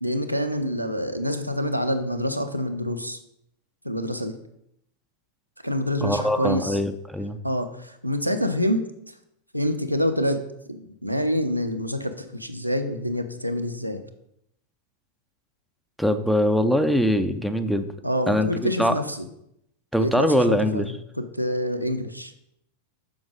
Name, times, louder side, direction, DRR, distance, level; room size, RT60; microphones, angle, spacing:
voice 1, 0.0-3.2 3.8-4.3 5.6-6.8 7.4-8.8 9.5-10.4 10.7-14.0 18.0-19.2 20.0-20.8 21.2-22.3, equal, 90° right, 6 dB, 0.7 m, -26 dB
voice 2, 6.0-7.4 16.0-17.9 18.3-18.5 18.8-18.9 19.9-20.9, equal, ahead, 9 dB, 0.6 m, -22 dB
7.2 x 6.0 x 5.1 m, 0.78 s
figure-of-eight pair, 90°, 0 cm